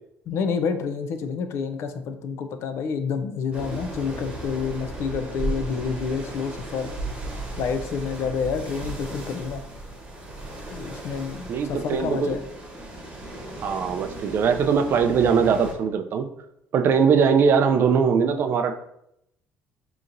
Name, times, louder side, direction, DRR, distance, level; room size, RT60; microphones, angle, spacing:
voice 1, 0.3-6.9 7.6-9.6 10.7-12.4, left 6 dB, 60° left, 8 dB, 0.4 m, -28 dB
sound 1, 3.5-15.7, right 2 dB, 20° right, 1.2 m, -35 dB
voice 2, 11.5-12.3 13.6-16.3 16.7-18.7, right 6 dB, 45° right, 7 dB, 0.4 m, -21 dB
5.0 x 2.9 x 2.5 m, 0.78 s
cardioid pair, 125°, 5 cm